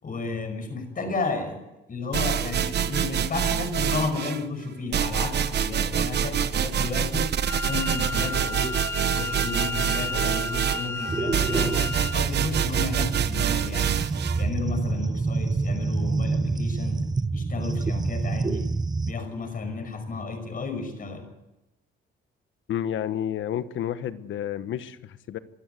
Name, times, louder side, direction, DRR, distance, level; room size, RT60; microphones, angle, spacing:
voice 1, 0.0-1.6 1.9-7.3 7.6-14.0 14.4-17.0 17.3-18.7 19.1-21.3, left 4 dB, 45° left, 7 dB, 5.8 m, -32 dB
sound 1, 2.1-4.4 4.9-14.4, right 9 dB, 60° right, 1.1 m, -26 dB
Wind instrument woodwind instrument, 7.4-12.3, left 3 dB, 10° left, 0.7 m, -33 dB
sound 2, 11.1-19.1, right 3 dB, 20° right, 0.9 m, -28 dB
voice 2, 22.7-25.4, left 10 dB, 75° left, 13 dB, 1.3 m, -30 dB
23.0 x 13.0 x 9.4 m, 0.96 s
cardioid pair, 90°, 20 cm